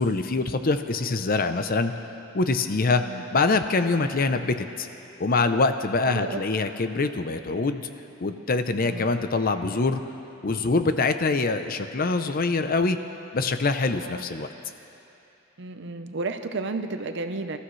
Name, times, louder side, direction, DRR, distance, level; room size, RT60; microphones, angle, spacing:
voice 1, 0.0-1.9 2.3-3.0 3.3-4.9 5.2-7.9 8.2-10.0 10.4-13.0 13.3-14.5, left 3 dB, 45° left, 9 dB, 0.6 m, -24 dB
voice 2, 6.1-6.4 8.8-9.0 14.0-14.2 15.6-17.6, right 3 dB, 60° right, 7 dB, 0.8 m, -32 dB
27.5 x 14.5 x 3.2 m, 3.0 s
head